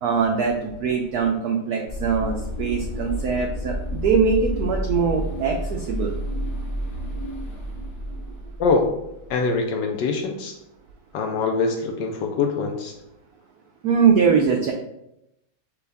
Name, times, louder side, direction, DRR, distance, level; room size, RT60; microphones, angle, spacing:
voice 1, 0.0-6.1 13.8-14.7, right 6 dB, 85° right, 2 dB, 0.8 m, -22 dB
sound 1, 1.9-9.3, equal, 50° left, 1.0 m, -30 dB
voice 2, 9.3-10.6 11.1-12.9, left 4 dB, 75° left, 3 dB, 1.1 m, -23 dB
6.7 x 2.3 x 3.4 m, 0.83 s
omnidirectional pair, 2.2 m